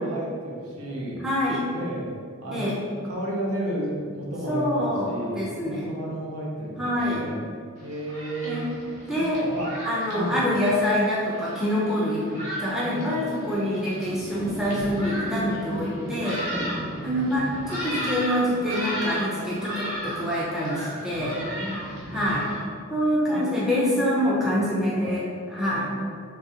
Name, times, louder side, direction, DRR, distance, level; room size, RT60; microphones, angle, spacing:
voice 1, 0.0-1.2 1.7-2.1 2.4-2.7 3.0-5.4 5.7-7.4 7.8-8.7 9.1-9.8 10.1-10.5 12.1-12.4 12.8-13.2 13.7-14.0 16.4-18.0 20.7-22.5 23.2-23.5 24.8-25.2 25.7-25.9, right 1 dB, 85° right, -4 dB, 0.8 m, -34 dB
voice 2, 1.2-1.6 2.5-2.8 4.5-5.9 6.8-7.3 8.4-8.8 9.1-9.4 9.8-12.3 12.6-16.4 17.0-21.4 22.1-22.5 22.9-25.9, equal, 5° right, -7 dB, 0.5 m, -25 dB
Thunderstorm, 7.8-22.6, equal, 35° right, 0.9 m, -35 dB
3.8 x 3.3 x 2.8 m, 2.1 s
head